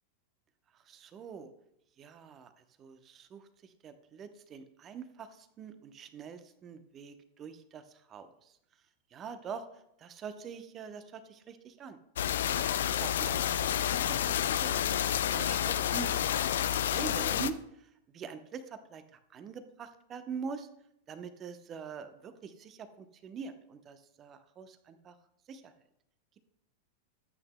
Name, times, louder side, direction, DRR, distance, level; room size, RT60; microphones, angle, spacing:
voice 1, 0.7-1.5 2.0-8.6 9.1-9.7 10.0-12.0 13.0-13.4 13.8-20.7 21.1-25.2 25.5-25.7, right 6 dB, 30° right, 10 dB, 0.9 m, -44 dB
sound 1, 12.2-17.5, left 10 dB, 60° left, 0.4 m, -29 dB
13.5 x 8.6 x 2.2 m, 0.77 s
figure-of-eight pair, 90°, 0 cm